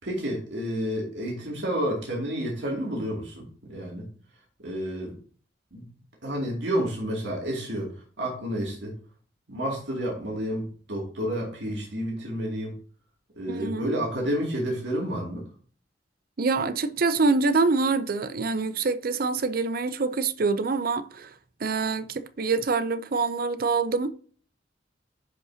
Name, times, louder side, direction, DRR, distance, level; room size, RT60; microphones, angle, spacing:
voice 1, 0.0-4.1 4.6-5.2 5.7-5.8 6.2-8.9 9.5-12.7 13.4-15.4, equal, 80° right, 2.6 m, -30 dB
voice 2, 13.5-13.9 16.4-21.3 21.6-24.1, right 4 dB, 55° right, 0.5 m, -25 dB
10.5 x 5.4 x 2.8 m
head